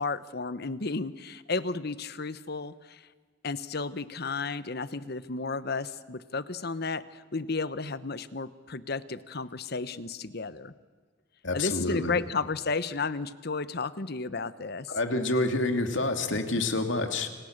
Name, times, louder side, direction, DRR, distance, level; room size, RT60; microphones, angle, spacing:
voice 1, 0.0-3.1 3.4-10.7 11.5-14.9, left 4 dB, 55° left, 14 dB, 1.0 m, -33 dB
voice 2, 11.4-12.2 14.9-17.3, left 2 dB, 70° left, 6 dB, 2.8 m, -28 dB
30.0 x 28.0 x 6.7 m, 1.5 s
head